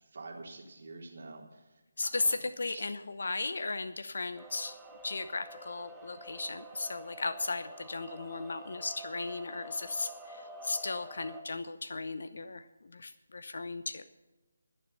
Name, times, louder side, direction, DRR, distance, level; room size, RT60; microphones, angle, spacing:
voice 1, 0.1-1.6 2.0-2.3 2.7-2.9, right 3 dB, 55° right, 1 dB, 3.5 m, -47 dB
voice 2, 2.0-4.8 5.0-14.0, left 3 dB, 60° left, 12 dB, 0.8 m, -36 dB
sound 1, 4.4-11.4, right 1 dB, 5° right, 1.4 m, -49 dB
21.0 x 7.2 x 5.5 m, 1.1 s
figure-of-eight pair, 155°, 0 cm